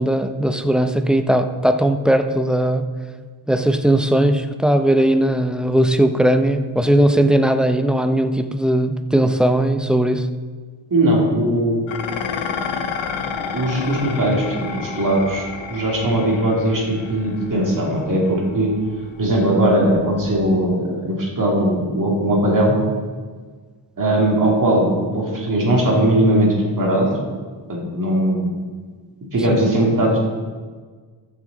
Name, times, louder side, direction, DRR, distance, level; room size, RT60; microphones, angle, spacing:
voice 1, 0.0-2.9 3.5-10.3 29.5-29.6, right 1 dB, ahead, 8 dB, 0.5 m, -18 dB
voice 2, 10.9-11.9 13.5-18.7 19.2-22.8 24.0-27.1 27.7-28.5 29.3-30.2, right 1 dB, 45° right, -2 dB, 2.4 m, -19 dB
Dishes pots and pans, 11.9-20.7, left 6 dB, 80° left, 0.8 m, -31 dB
14.5 x 6.3 x 3.9 m, 1.5 s
cardioid pair, 95°, 46 cm